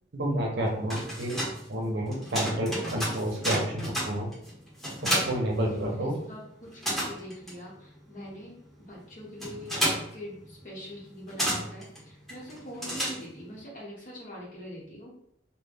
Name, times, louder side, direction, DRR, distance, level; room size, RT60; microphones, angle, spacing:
voice 1, 0.1-1.4 1.7-4.3 5.0-6.2, right 1 dB, 65° right, 0 dB, 0.7 m, -30 dB
sound 1, 0.7-6.3 6.5-13.6, equal, ahead, 0.9 m, -33 dB
voice 2, 5.6-8.6 8.9-15.3, equal, 45° left, -5 dB, 1.0 m, -44 dB
2.1 x 2.1 x 3.4 m, 0.70 s
head